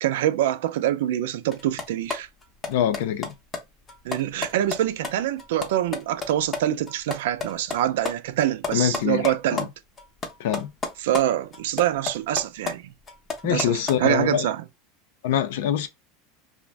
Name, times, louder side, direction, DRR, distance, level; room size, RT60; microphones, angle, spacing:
voice 1, 0.0-2.3 4.0-9.7 11.0-12.9 13.4-14.6, right 12 dB, 80° right, 0.4 m, -25 dB
sound 1, 1.5-6.6 6.9-9.6 10.0-11.2 11.5-14.0, left 4 dB, 20° left, 0.6 m, -32 dB
voice 2, 2.7-3.3 8.7-9.7 10.4-10.7 13.4-14.5 15.2-15.9, left 10 dB, 75° left, 0.5 m, -24 dB
2.5 x 2.1 x 3.2 m
supercardioid pair, 160°, 0 cm